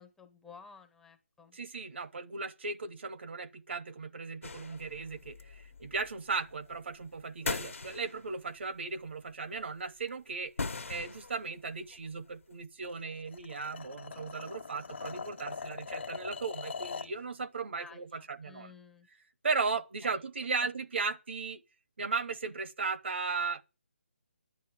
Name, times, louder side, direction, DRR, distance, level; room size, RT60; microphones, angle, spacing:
voice 1, 0.0-1.6 17.8-19.1 19.7-20.2 20.6-20.7, left 5 dB, 5° left, 0.6 m, -54 dB
voice 2, 1.5-10.5 10.9-18.7 19.4-21.6 22.0-23.6, right 4 dB, 60° right, 1.0 m, -36 dB
sound 1, 4.4-8.6 8.9-9.7 10.1-10.2 10.4-12.3, left 4 dB, 85° left, 1.2 m, -41 dB
sound 2, 12.8-17.2, left 5 dB, 60° left, 1.1 m, -42 dB
10.5 x 8.1 x 8.3 m
hypercardioid pair, 165°, 7 cm